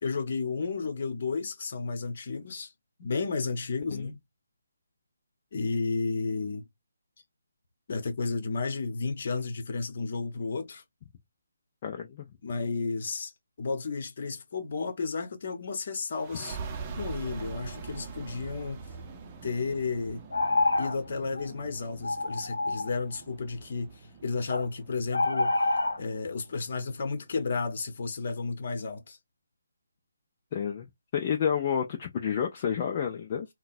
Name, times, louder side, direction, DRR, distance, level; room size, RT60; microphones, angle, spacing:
voice 1, 0.0-2.7 3.0-4.2 5.5-6.6 7.9-10.8 12.4-13.3 13.6-16.6 16.9-18.8 19.4-20.2 20.8-25.6 26.0-29.2, left 4 dB, 50° left, 1.1 m, -32 dB
voice 2, 11.8-12.3 30.5-30.9 31.1-33.5, left 8 dB, 30° left, 0.5 m, -30 dB
sound 1, 16.1-27.4, right 5 dB, 25° right, 0.6 m, -44 dB
sound 2, 20.3-21.0 21.3-21.5 22.0-23.0 24.5-24.7 25.1-26.0, left 2 dB, 75° left, 0.9 m, -27 dB
3.8 x 2.2 x 2.6 m
figure-of-eight pair, 150°, 0 cm